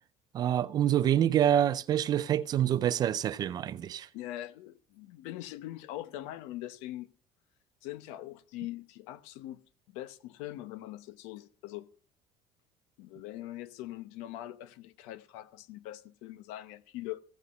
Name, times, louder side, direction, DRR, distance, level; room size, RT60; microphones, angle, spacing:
voice 1, 0.3-4.1, right 10 dB, 35° right, 0.5 m, -26 dB
voice 2, 4.1-7.1 7.8-9.6 9.9-11.9 13.0-17.2, left 14 dB, 85° left, 0.9 m, -42 dB
15.5 x 6.3 x 5.5 m
cardioid pair, 140°, 11 cm